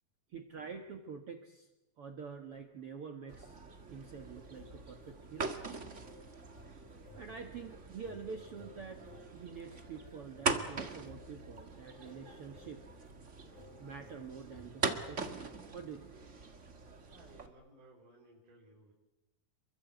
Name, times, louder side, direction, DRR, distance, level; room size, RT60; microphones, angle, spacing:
voice 1, 0.3-1.7 2.0-3.6 3.9-5.6 7.1-9.0 9.3-12.8 13.8-15.5 15.7-16.1, right 5 dB, 50° right, 5 dB, 2.0 m, -47 dB
sound 1, 3.3-17.5, right 4 dB, 30° right, 1.4 m, -42 dB
sound 2, 4.5-15.7, left 3 dB, 60° left, 7.1 m, -58 dB
voice 2, 17.0-18.9, right 2 dB, 70° right, -3 dB, 5.7 m, -59 dB
28.0 x 23.0 x 8.1 m, 0.99 s
omnidirectional pair, 3.9 m